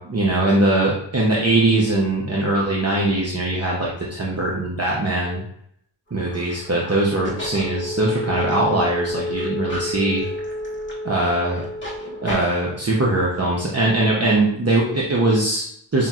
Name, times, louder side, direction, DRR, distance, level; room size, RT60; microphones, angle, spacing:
voice 1, 0.0-5.4 6.1-10.2 11.0-11.6 12.0-16.1, right 2 dB, 35° right, -4 dB, 0.8 m, -21 dB
sound 1, 6.1-12.3, equal, 25° left, 1.5 m, -30 dB
5.6 x 2.8 x 2.4 m, 0.69 s
wide cardioid pair, 50°, 44 cm